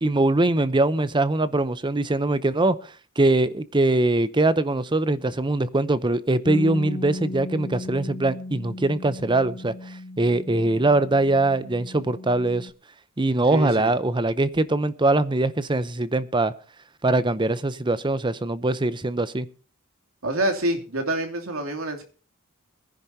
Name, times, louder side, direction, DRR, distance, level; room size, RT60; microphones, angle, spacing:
voice 1, 0.0-2.8 3.2-9.7 10.2-12.7 13.2-16.5 17.0-19.5, right 2 dB, 20° right, 15 dB, 0.7 m, -22 dB
Bass guitar, 6.5-12.7, left 2 dB, 50° left, 1.1 m, -36 dB
voice 2, 13.5-13.9 20.2-22.0, right 1 dB, 70° right, 4 dB, 2.9 m, -26 dB
21.5 x 10.5 x 2.8 m, 0.38 s
head